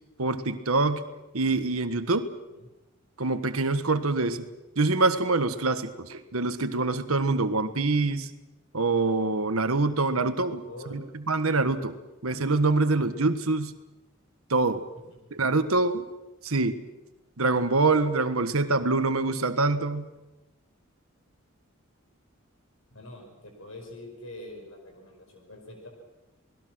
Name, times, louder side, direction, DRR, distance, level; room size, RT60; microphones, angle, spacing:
voice 1, 0.2-1.0 1.3-2.3 3.2-4.5 4.8-8.3 8.7-11.9 12.2-13.7 14.5-14.8 15.3-16.1 16.4-16.8 17.4-20.1, right 3 dB, 85° right, 10 dB, 1.4 m, -25 dB
voice 2, 10.3-11.0 15.1-15.3 22.9-25.9, left 1 dB, 75° left, 2 dB, 5.4 m, -45 dB
28.0 x 19.5 x 6.3 m, 1.0 s
head